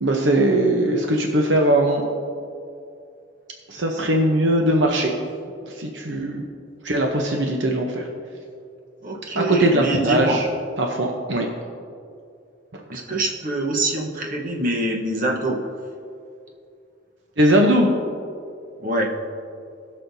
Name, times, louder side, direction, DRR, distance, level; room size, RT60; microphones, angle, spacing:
voice 1, 0.0-2.0 3.7-5.1 5.7-6.4 6.8-8.1 9.3-10.5 10.8-11.5 12.7-12.8 17.4-17.9, right 1 dB, 70° right, 1 dB, 0.9 m, -20 dB
voice 2, 9.0-10.4 12.9-15.6 18.8-19.1, right 1 dB, 45° right, -1 dB, 1.2 m, -24 dB
19.5 x 6.5 x 2.7 m, 2.5 s
head